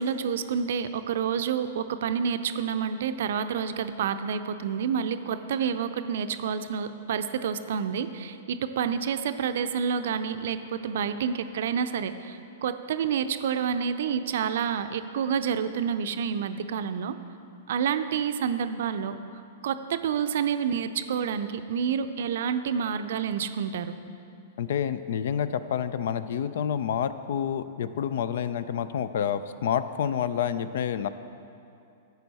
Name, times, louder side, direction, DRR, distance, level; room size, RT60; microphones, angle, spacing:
voice 1, 0.0-17.2 17.7-19.2 19.6-23.9, right 7 dB, 65° right, 10 dB, 0.5 m, -28 dB
voice 2, 24.6-31.1, left 8 dB, 65° left, 13 dB, 0.4 m, -28 dB
11.0 x 8.1 x 4.1 m, 2.6 s
hypercardioid pair, 105°, 0 cm